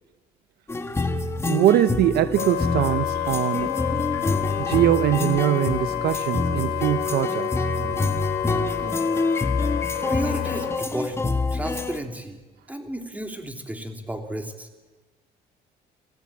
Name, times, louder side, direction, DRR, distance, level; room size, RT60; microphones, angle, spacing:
sound 1, 0.7-12.0, left 3 dB, 15° left, 1.6 m, -27 dB
voice 1, 1.5-3.7 4.6-7.6, right 13 dB, 70° right, 0.8 m, -22 dB
Wind instrument woodwind instrument, 2.3-10.8, left 12 dB, 85° left, 1.3 m, -29 dB
sound 2, 3.3-3.8 5.3-5.5 6.3-6.8 7.8-8.0 8.8-9.0 9.9-10.7, right 3 dB, 30° right, 7.2 m, -40 dB
voice 2, 10.1-12.4 12.7-14.7, right 1 dB, 10° right, 3.3 m, -32 dB
28.5 x 16.5 x 8.9 m
cardioid pair, 110°, 17 cm